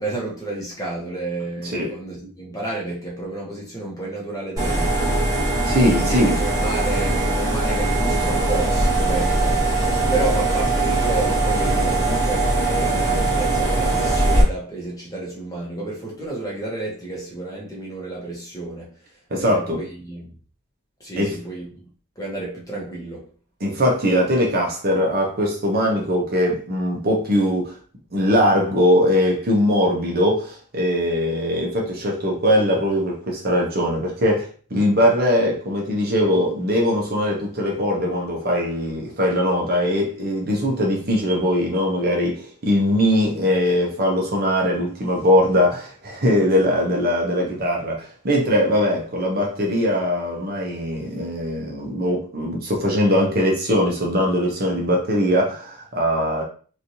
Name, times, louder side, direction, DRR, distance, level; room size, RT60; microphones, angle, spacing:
voice 1, 0.0-5.1 5.9-20.3 21.0-21.9 22.2-23.3, right 2 dB, 15° left, 1.0 m, -31 dB
sound 1, 4.6-14.4, right 2 dB, 15° right, 1.3 m, -21 dB
voice 2, 5.6-6.4 19.3-19.8 21.2-21.4 23.6-27.7 28.1-56.4, equal, 45° right, 0.7 m, -21 dB
3.0 x 2.6 x 2.7 m
head